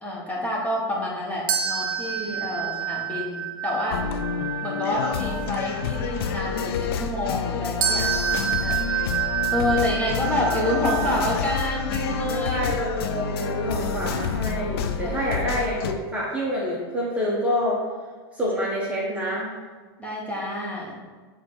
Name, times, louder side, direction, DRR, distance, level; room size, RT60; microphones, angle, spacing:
voice 1, 0.0-4.0 4.6-9.1 9.5-12.7 15.0-15.8 20.0-21.0, left 1 dB, 10° left, -4 dB, 1.6 m, -28 dB
sound 1, 1.5-6.3 7.8-12.4, right 8 dB, 35° right, 0.8 m, -29 dB
voice 2, 2.2-2.7 12.5-17.8 18.3-19.5, left 1 dB, 10° right, -6 dB, 1.2 m, -27 dB
sound 2, 3.9-15.9, left 6 dB, 75° left, 0.6 m, -28 dB
8.2 x 3.6 x 4.7 m, 1.5 s
supercardioid pair, 135°, 13 cm